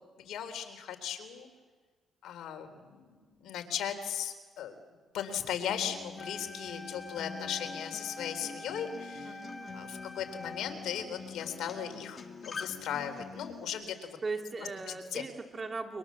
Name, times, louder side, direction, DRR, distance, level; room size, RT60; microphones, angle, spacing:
voice 1, 0.3-1.5 2.2-3.0 3.4-4.7 5.1-9.3 9.7-12.2 12.5-14.2 15.1-15.2, left 9 dB, 80° left, 6 dB, 3.5 m, -37 dB
Acoustic guitar, 5.7-13.7, left 5 dB, 40° left, 2.4 m, -45 dB
Wind instrument woodwind instrument, 6.2-11.3, left 2 dB, 20° left, 1.8 m, -46 dB
voice 2, 9.2-9.9 14.2-16.0, right 3 dB, 35° right, 5 dB, 2.8 m, -39 dB
29.0 x 25.0 x 7.4 m, 1.5 s
cardioid pair, 90°, 0 cm